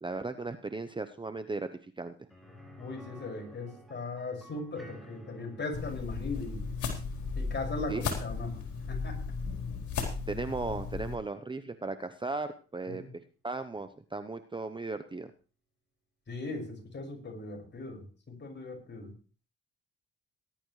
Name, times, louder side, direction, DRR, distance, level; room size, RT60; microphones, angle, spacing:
voice 1, 0.0-2.2 7.9-8.0 10.3-13.0 13.4-15.3, right 3 dB, 15° right, 10 dB, 0.8 m, -36 dB
sound 1, 2.3-12.1 12.4-12.5 14.9-15.0, right 1 dB, ahead, 5.7 m, -55 dB
voice 2, 2.8-6.8 7.4-9.2 12.9-13.1 16.3-19.1, left 3 dB, 35° left, 2 dB, 5.8 m, -39 dB
sound 2, 5.7-11.2, left 5 dB, 70° left, 4.0 m, -35 dB
19.0 x 11.5 x 3.2 m, 0.37 s
cardioid pair, 90°, 30 cm